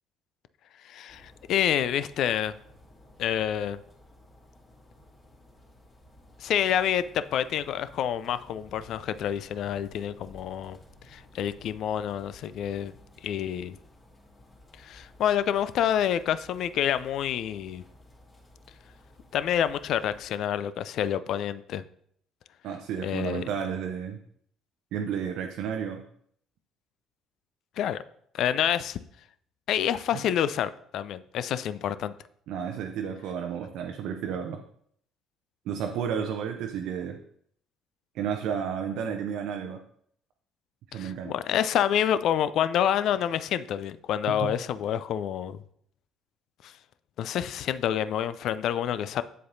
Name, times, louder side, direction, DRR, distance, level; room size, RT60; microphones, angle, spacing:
voice 1, 0.8-2.5 3.2-3.8 6.4-10.8 11.1-12.9 13.2-13.8 14.8-17.8 19.3-21.8 23.0-23.4 27.8-28.0 28.3-29.0 29.7-32.1 40.9-45.6 46.6-46.7 47.2-49.2, left 10 dB, 55° left, 14 dB, 0.4 m, -28 dB
sound 1, 1.1-20.3, left 1 dB, 30° left, 2.4 m, -55 dB
voice 2, 22.6-24.2 24.9-26.0 30.1-30.2 32.5-34.6 35.7-37.2 38.1-39.8 40.9-41.3 44.3-44.6, right 7 dB, 60° right, 4 dB, 0.6 m, -32 dB
7.9 x 7.5 x 2.6 m, 0.66 s
figure-of-eight pair, 50°, 0 cm